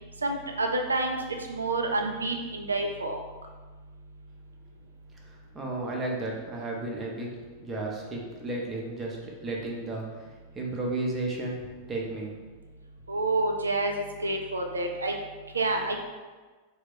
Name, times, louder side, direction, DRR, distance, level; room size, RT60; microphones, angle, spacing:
voice 1, 0.2-1.2 1.5-3.2 13.1-15.1 15.5-16.0, right 2 dB, 75° right, 3 dB, 0.3 m, -28 dB
voice 2, 5.3-7.3 7.6-10.3 10.5-12.3, right 2 dB, 20° right, -1 dB, 0.6 m, -33 dB
2.3 x 2.1 x 3.6 m, 1.3 s
figure-of-eight pair, 90°, 0 cm